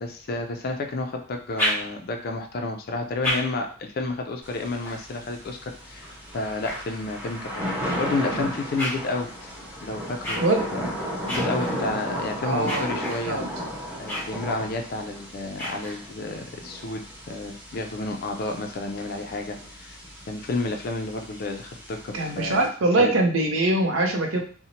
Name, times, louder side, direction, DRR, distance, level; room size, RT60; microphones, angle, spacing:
voice 1, 0.0-6.1 6.3-9.5 9.8-10.4 10.7-10.9 11.3-13.4 14.0-20.0 20.3-22.6 23.0-23.2, left 2 dB, 45° left, 4 dB, 0.4 m, -31 dB
sound 1, 1.3-2.3 2.9-7.5 8.1-16.4, equal, 10° left, 0.9 m, -35 dB
Thunder / Rain, 4.4-22.7, equal, 20° right, 1.1 m, -35 dB
voice 2, 12.4-12.9 13.2-13.4 22.1-24.4, right 2 dB, 80° right, 3 dB, 0.5 m, -22 dB
2.7 x 2.1 x 2.8 m, 0.43 s
head